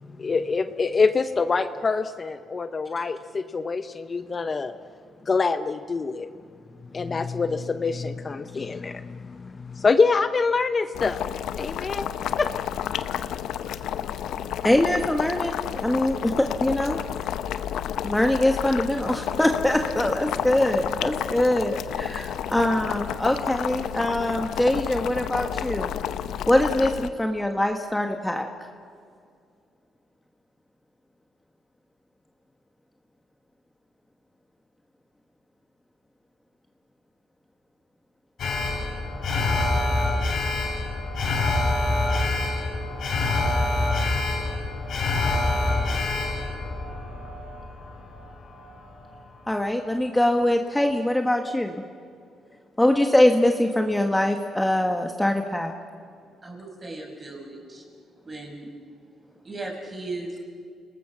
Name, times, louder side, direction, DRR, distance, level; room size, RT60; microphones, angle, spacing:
voice 1, 0.2-4.7 5.3-6.3 6.9-11.2 11.6-12.1 12.4-12.5 12.7-13.3 13.6-13.7, left 4 dB, 35° left, 10 dB, 0.8 m, -25 dB
Boiling, 10.9-27.1, left 10 dB, 80° left, 0.8 m, -31 dB
voice 2, 14.6-17.0 18.0-25.9 26.5-28.5 49.5-51.8 52.8-55.7, left 1 dB, 10° left, 4 dB, 1.5 m, -23 dB
Alarm, 38.4-48.7 49.0-49.1, left 2 dB, 65° left, 4.8 m, -26 dB
voice 3, 56.4-57.8 58.2-58.7 59.4-60.4, right 2 dB, 30° right, 1 dB, 5.9 m, -37 dB
28.5 x 19.5 x 6.1 m, 2.3 s
cardioid pair, 90°, 0 cm